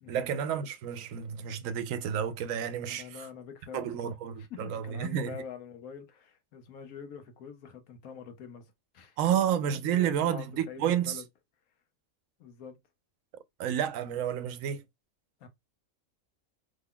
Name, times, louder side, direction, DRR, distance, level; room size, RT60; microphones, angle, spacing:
voice 1, 0.1-3.2 3.7-5.4 9.2-11.2 13.6-14.8, right 9 dB, 75° right, 0.9 m, -30 dB
voice 2, 2.8-9.5 9.9-11.2 12.4-12.8 15.4-15.5, left 6 dB, 85° left, 1.3 m, -45 dB
3.4 x 2.2 x 3.7 m
omnidirectional pair, 1.5 m